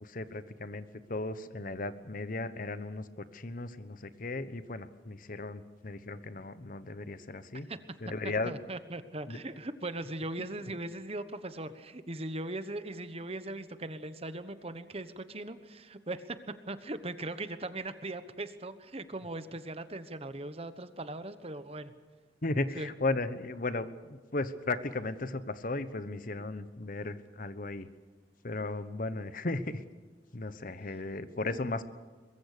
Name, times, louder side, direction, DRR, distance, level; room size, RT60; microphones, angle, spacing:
voice 1, 0.0-7.7 8.0-8.5 9.3-9.4 22.4-27.9 28.4-29.8 30.3-31.8, left 2 dB, 50° left, 13 dB, 1.0 m, -36 dB
voice 2, 8.4-16.4 16.7-21.9 22.8-22.9, right 2 dB, 35° right, 11 dB, 1.2 m, -39 dB
23.0 x 22.0 x 6.8 m, 1.4 s
head